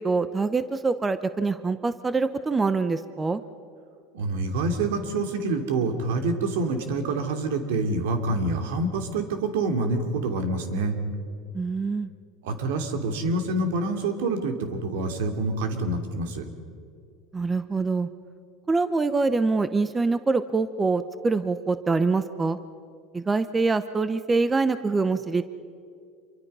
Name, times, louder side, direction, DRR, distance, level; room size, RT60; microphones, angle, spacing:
voice 1, 0.0-3.4 11.5-12.1 17.3-18.1 18.7-22.6 23.1-25.4, right 3 dB, 15° right, 12 dB, 0.8 m, -25 dB
voice 2, 4.1-11.0 12.4-16.4, right 2 dB, 85° right, 6 dB, 2.8 m, -27 dB
27.0 x 23.5 x 5.6 m, 2.4 s
supercardioid pair, 125°, 0 cm